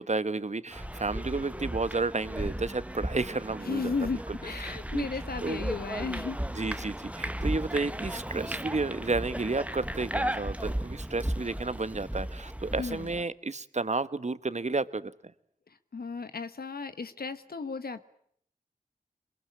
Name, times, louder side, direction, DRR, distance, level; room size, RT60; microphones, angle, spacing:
voice 1, 0.0-3.9 4.3-5.1 5.4-5.6 6.5-15.1, right 3 dB, 50° right, 14 dB, 1.2 m, -32 dB
sound 1, 0.7-13.2, right 1 dB, 10° right, 1.2 m, -35 dB
voice 2, 3.6-6.4 12.8-13.1 15.9-18.0, left 4 dB, 90° left, 11 dB, 1.3 m, -34 dB
23.5 x 22.5 x 8.8 m, 0.67 s
cardioid pair, 40°, 15 cm